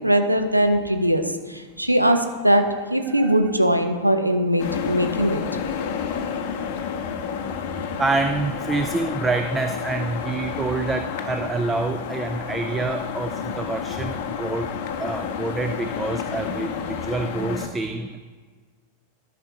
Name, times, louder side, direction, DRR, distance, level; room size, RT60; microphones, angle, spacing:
voice 1, 0.0-5.4, equal, 90° right, 6 dB, 0.7 m, -21 dB
sound 1, 4.6-17.7, left 7 dB, 50° left, 0.7 m, -30 dB
voice 2, 8.0-14.7 15.0-18.2, right 3 dB, 15° right, 8 dB, 0.4 m, -27 dB
13.0 x 6.0 x 2.9 m, 1.5 s
figure-of-eight pair, 90°, 0 cm